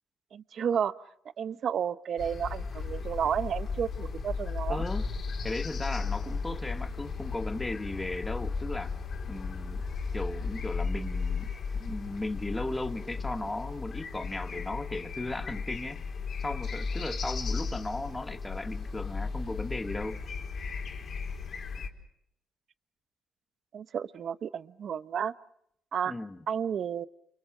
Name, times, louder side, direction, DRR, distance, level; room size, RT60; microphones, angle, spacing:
voice 1, 0.3-0.9 1.4-4.8 23.7-25.3 25.9-26.1 26.5-27.1, right 8 dB, 55° right, 14 dB, 1.1 m, -31 dB
sound 1, 2.2-21.9, left 4 dB, 50° left, 4.6 m, -35 dB
voice 2, 4.7-5.1 5.4-9.0 9.3-9.8 10.1-11.5 11.8-16.0 16.4-20.2 26.1-26.4, left 2 dB, 15° left, 8 dB, 1.5 m, -36 dB
29.5 x 29.0 x 5.0 m, 0.74 s
cardioid pair, 110°, 0 cm